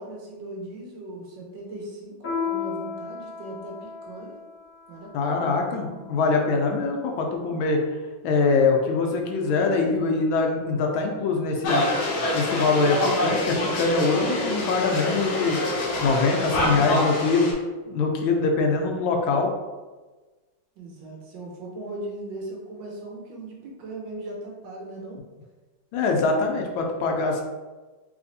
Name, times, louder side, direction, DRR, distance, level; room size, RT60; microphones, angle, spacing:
voice 1, 0.0-2.1 2.4-4.4 4.9-5.5 16.3-17.0 20.8-25.2, right 1 dB, 70° right, -2 dB, 1.4 m, -38 dB
Piano, 2.2-7.2, left 6 dB, 30° left, 1.1 m, -35 dB
voice 2, 5.1-7.8 8.2-11.9 12.3-15.6 16.0-17.5 17.9-19.5 25.9-27.4, left 4 dB, 85° left, 2 dB, 1.4 m, -23 dB
sound 1, 11.6-17.5, left 1 dB, 65° left, 1.1 m, -26 dB
3.4 x 3.2 x 2.6 m, 1.2 s
omnidirectional pair, 2.2 m